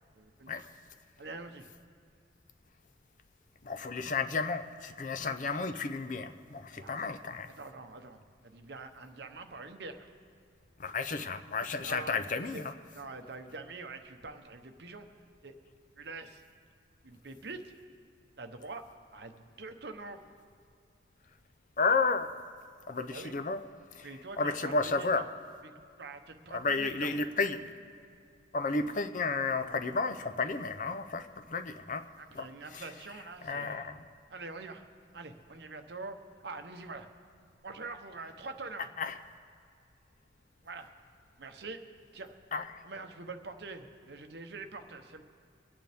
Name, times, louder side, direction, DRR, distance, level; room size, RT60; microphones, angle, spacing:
voice 1, 0.2-0.7 1.2-1.7 6.7-7.2 7.6-10.1 11.8-12.1 12.5-12.6 12.9-15.2 15.4-15.5 16.0-16.4 17.0-17.7 18.4-18.8 19.1-20.2 23.1-23.3 24.0-25.2 25.6-27.1 32.2-33.9 34.3-34.8 35.1-36.2 36.4-37.1 37.6-38.9 40.6-40.9 41.4-41.8 42.1-42.3 42.8-45.2, right 3 dB, 60° right, 7 dB, 0.9 m, -45 dB
voice 2, 3.6-7.5 10.8-12.7 21.8-22.3 22.9-23.6 23.9-24.1 24.4-25.3 26.5-27.7 28.5-32.1 32.3-32.9 33.4-34.0 39.0-39.2 42.5-42.8, left 4 dB, 45° left, 10 dB, 0.5 m, -32 dB
24.0 x 9.0 x 3.5 m, 2.4 s
head